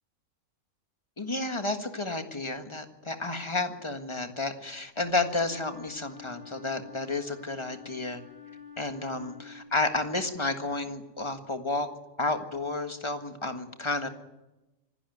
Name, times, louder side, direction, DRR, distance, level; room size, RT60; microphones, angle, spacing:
voice 1, 1.2-8.2 8.8-11.9 12.2-14.1, left 2 dB, 20° left, 6 dB, 1.6 m, -31 dB
Wind instrument woodwind instrument, 5.3-9.8, left 7 dB, 25° right, 5.8 m, -48 dB
25.5 x 12.0 x 9.2 m, 1.0 s
omnidirectional pair, 1.4 m